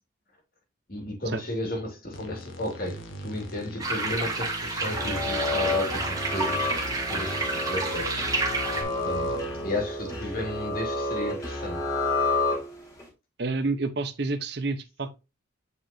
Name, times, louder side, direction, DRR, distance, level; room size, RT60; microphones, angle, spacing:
voice 1, 0.9-6.0 6.3-6.8 7.1-8.3 9.0-11.8, left 1 dB, 45° left, 2.4 m, -34 dB
Fake Moog, 2.1-9.8, equal, 85° left, 1.5 m, -41 dB
sound 1, 3.8-8.8, right 3 dB, 20° right, 1.4 m, -30 dB
sound 2, 4.8-13.0, left 2 dB, 15° left, 2.4 m, -30 dB
voice 2, 13.4-15.2, right 3 dB, 55° right, 0.9 m, -29 dB
8.2 x 5.0 x 2.7 m
head